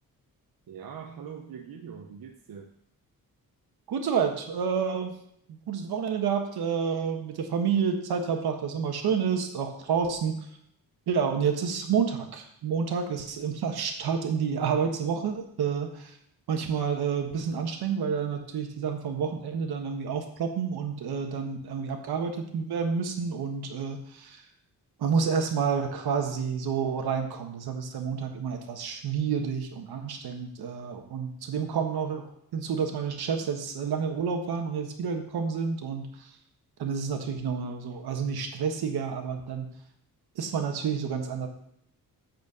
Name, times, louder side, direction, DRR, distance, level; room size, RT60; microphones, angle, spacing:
voice 1, 0.7-2.7, right 7 dB, 70° right, 1 dB, 1.0 m, -42 dB
voice 2, 3.9-5.1 5.5-10.4 11.1-16.2 16.5-24.4 25.0-32.2 32.5-36.3 36.8-39.7 40.3-41.5, right 6 dB, 85° right, 4 dB, 1.4 m, -29 dB
8.2 x 4.5 x 6.7 m, 0.71 s
cardioid pair, 110°, 37 cm